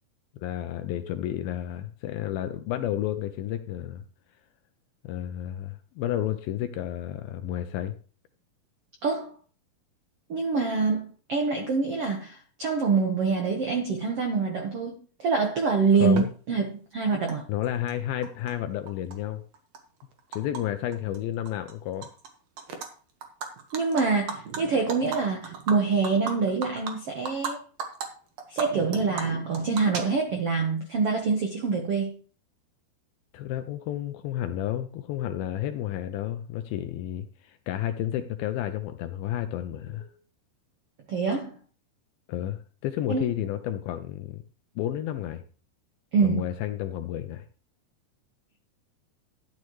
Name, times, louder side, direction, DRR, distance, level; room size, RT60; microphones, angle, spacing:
voice 1, 0.4-4.0 5.0-7.9 16.0-16.3 17.5-19.4 20.3-22.1 33.3-40.1 42.3-44.4 44.8-45.4 46.2-47.5, left 12 dB, 80° left, 8 dB, 2.2 m, -31 dB
voice 2, 9.0-9.3 10.3-17.4 23.7-27.6 28.5-32.1 41.1-41.5 43.1-43.3 46.1-46.4, right 4 dB, 80° right, 2 dB, 1.3 m, -25 dB
Animal, 16.2-16.3 17.3-17.4 17.6-18.5 18.9-20.6 20.9-21.2 21.5-22.3 22.6-22.9 23.2-27.5 27.8-28.1 28.4-30.5, right 6 dB, 60° right, 1.9 m, -36 dB
12.0 x 9.6 x 3.1 m, 0.41 s
omnidirectional pair, 4.8 m